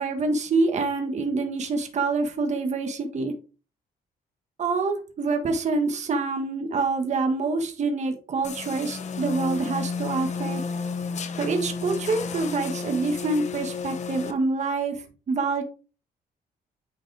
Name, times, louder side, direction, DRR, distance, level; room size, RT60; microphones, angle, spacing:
voice 1, 0.0-3.3 4.6-10.6 11.4-15.6, right 3 dB, 45° right, 5 dB, 1.5 m, -26 dB
sound 1, 8.4-14.3, left 5 dB, 45° left, 1.0 m, -32 dB
9.4 x 5.0 x 3.4 m, 0.35 s
cardioid pair, 135°, 16 cm